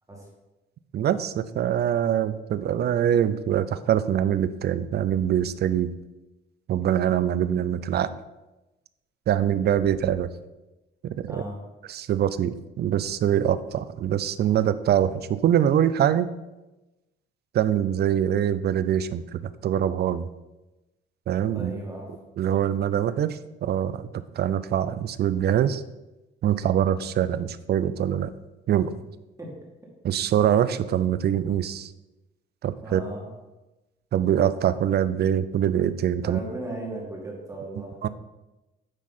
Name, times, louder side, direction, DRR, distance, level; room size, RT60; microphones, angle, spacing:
voice 1, 0.9-5.9 6.7-8.1 9.3-10.3 11.0-11.4 11.9-16.3 17.5-20.3 21.3-21.8 22.4-24.1 24.4-25.8 26.4-28.3 28.7-28.9 30.0-31.9 32.6-33.0 34.1-36.4 38.0-38.1, right 10 dB, 55° right, 14 dB, 0.4 m, -24 dB
voice 2, 11.3-11.6 21.5-22.1 29.4-29.5 32.8-33.4 36.2-38.1, right 1 dB, 15° right, -2 dB, 2.2 m, -36 dB
9.7 x 3.7 x 4.2 m, 1.0 s
cardioid pair, 90°, 21 cm